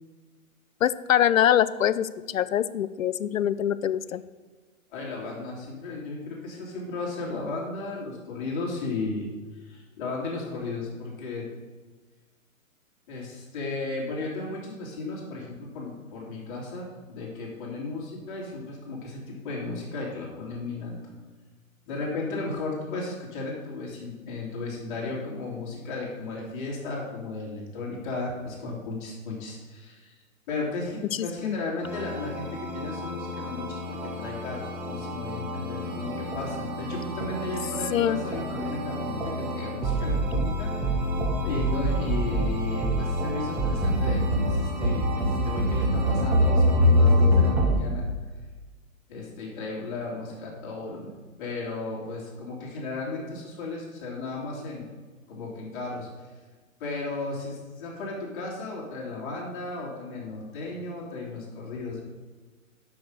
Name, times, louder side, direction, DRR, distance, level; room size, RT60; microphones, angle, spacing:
voice 1, 0.8-4.2 31.1-31.6 37.9-38.2, left 10 dB, 70° left, 16 dB, 0.5 m, -24 dB
voice 2, 4.9-11.5 13.1-21.1 21.9-40.9 41.4-48.1 49.1-54.9 55.3-56.3 56.8-62.0, left 3 dB, 35° left, -3 dB, 2.9 m, -35 dB
sound 1, 31.8-47.8, equal, 5° right, 0.5 m, -26 dB
6.3 x 6.1 x 6.5 m, 1.4 s
figure-of-eight pair, 125°, 41 cm